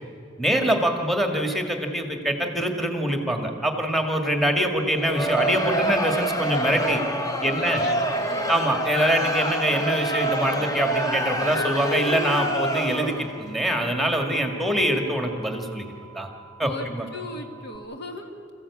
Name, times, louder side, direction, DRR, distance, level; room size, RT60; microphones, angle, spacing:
voice 1, 0.4-7.0 7.4-7.8 8.5-15.9 16.1-16.3 16.6-17.1, right 1 dB, ahead, 4 dB, 1.8 m, -24 dB
Crowd, 4.9-13.4, right 1 dB, 20° left, 1.2 m, -26 dB
voice 2, 7.4-8.0 8.3-8.5 16.6-18.5, left 2 dB, 60° left, 4 dB, 1.9 m, -38 dB
sound 1, 7.8-17.8, right 5 dB, 30° right, 1.0 m, -49 dB
26.5 x 15.0 x 8.4 m, 2.5 s
head